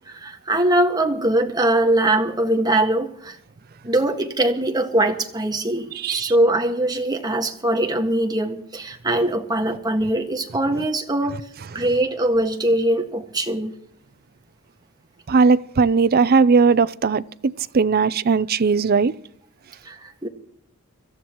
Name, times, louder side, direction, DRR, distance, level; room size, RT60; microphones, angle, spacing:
voice 1, 0.1-3.4 3.8-11.4 11.7-13.8 19.8-20.3, right 1 dB, 20° right, 1.7 m, -22 dB
voice 2, 15.3-19.1, right 4 dB, 45° right, 0.5 m, -18 dB
25.5 x 14.0 x 3.0 m
head